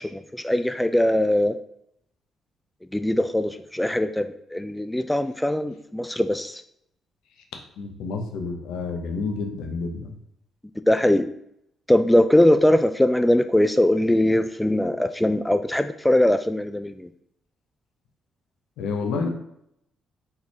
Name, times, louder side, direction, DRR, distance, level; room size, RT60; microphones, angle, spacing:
voice 1, 0.0-1.6 2.9-6.6 10.9-11.3 11.9-17.1, left 1 dB, 10° left, 9 dB, 0.3 m, -21 dB
voice 2, 7.8-10.2 18.8-19.3, left 4 dB, 70° left, 3 dB, 0.7 m, -29 dB
4.2 x 4.0 x 2.9 m, 0.75 s
hypercardioid pair, 45°, 0 cm